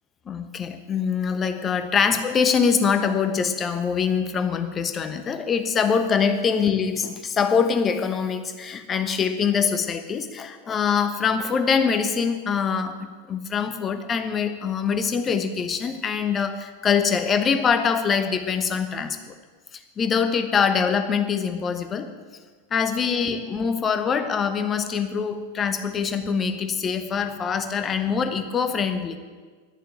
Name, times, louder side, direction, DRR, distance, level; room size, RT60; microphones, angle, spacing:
voice 1, 0.3-19.3 20.0-22.1 22.7-29.2, left 6 dB, 20° left, 8 dB, 1.0 m, -24 dB
11.5 x 7.1 x 8.7 m, 1.5 s
figure-of-eight pair, 90°, 0 cm